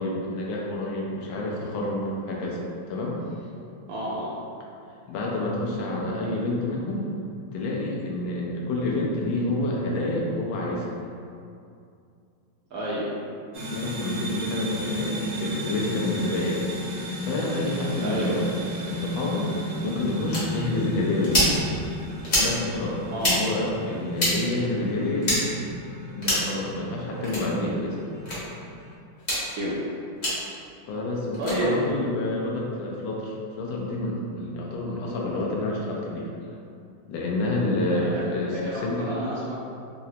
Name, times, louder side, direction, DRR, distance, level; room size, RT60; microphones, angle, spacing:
voice 1, 0.0-2.6 2.9-3.2 5.1-7.1 7.5-10.9 13.7-16.7 17.2-18.5 18.8-19.5 19.8-21.4 22.3-25.4 26.1-28.0 30.9-36.3 37.1-39.0, left 2 dB, 85° left, -3 dB, 1.4 m, -28 dB
voice 2, 3.9-4.3 12.7-13.1 18.0-18.3 23.1-23.3 29.6-29.7 31.4-31.7 38.1-38.2 38.5-39.5, right 1 dB, 70° right, -7 dB, 0.9 m, -30 dB
sound 1, 13.5-28.9, equal, 90° right, 1.4 m, -34 dB
sound 2, 20.3-20.4 21.2-21.5 22.2-22.5 23.2-23.4 24.2-24.3 25.2-25.4 26.2-26.5 27.2-27.4 28.2-28.4 29.2-29.4 30.2-30.3 31.3-31.6, equal, 45° left, 0.6 m, -24 dB
3.8 x 2.0 x 2.7 m, 2.5 s
omnidirectional pair, 2.1 m